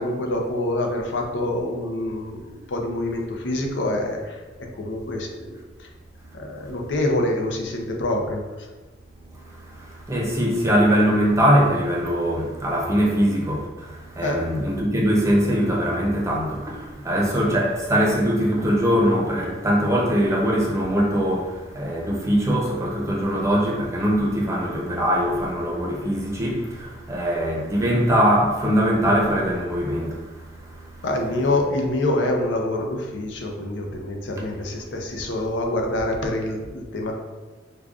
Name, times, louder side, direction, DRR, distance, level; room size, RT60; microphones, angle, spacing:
voice 1, 0.0-4.4 4.8-5.6 6.3-8.4 14.2-14.4 31.0-37.1, left 1 dB, 85° left, 0.6 m, -26 dB
voice 2, 9.3-31.0, equal, 15° right, 0.6 m, -22 dB
4.9 x 2.3 x 2.4 m
head